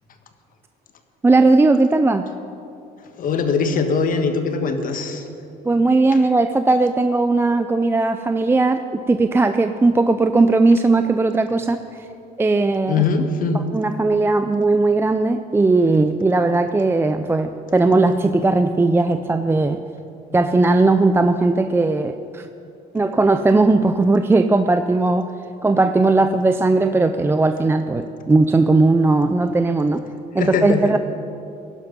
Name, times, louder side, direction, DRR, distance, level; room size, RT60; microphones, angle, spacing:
voice 1, 1.2-2.3 5.6-12.1 12.4-13.0 13.5-19.8 20.3-22.5 22.9-25.3 25.6-30.1 30.3-31.0, right 3 dB, 15° right, 9 dB, 0.4 m, -18 dB
voice 2, 3.2-5.2 12.9-13.6 30.4-30.8, left 5 dB, 55° left, 7 dB, 1.5 m, -21 dB
16.5 x 11.0 x 5.3 m, 2.7 s
cardioid pair, 110°, 17 cm